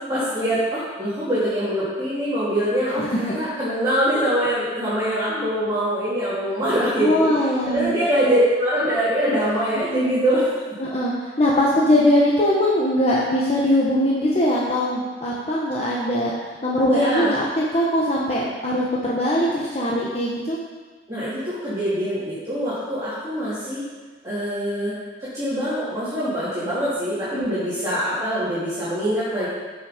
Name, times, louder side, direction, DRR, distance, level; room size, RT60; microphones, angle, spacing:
voice 1, 0.1-7.3 7.6-10.4 16.9-17.3 21.1-23.8 24.2-24.9 25.2-29.5, equal, 20° right, -13 dB, 3.1 m, -23 dB
voice 2, 3.0-3.3 7.0-7.9 9.9-10.2 10.8-16.3 16.6-20.6 27.3-27.5, left 1 dB, 35° left, -5 dB, 1.3 m, -21 dB
13.5 x 6.4 x 5.2 m, 1.4 s
head